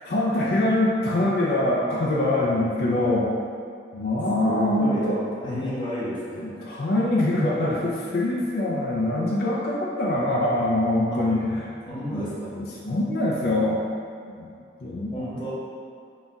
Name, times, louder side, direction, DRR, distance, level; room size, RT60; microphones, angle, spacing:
voice 1, 0.1-3.3 3.9-5.7 6.4-11.7 12.1-13.8 14.2-14.5 14.8-15.4, left 1 dB, 60° left, -5 dB, 0.4 m, -24 dB
voice 2, 4.4-5.1 5.4-6.4 11.1-11.2 11.9-12.5 15.1-15.5, equal, 25° left, -8 dB, 0.8 m, -31 dB
3.9 x 2.3 x 3.9 m, 2.4 s
head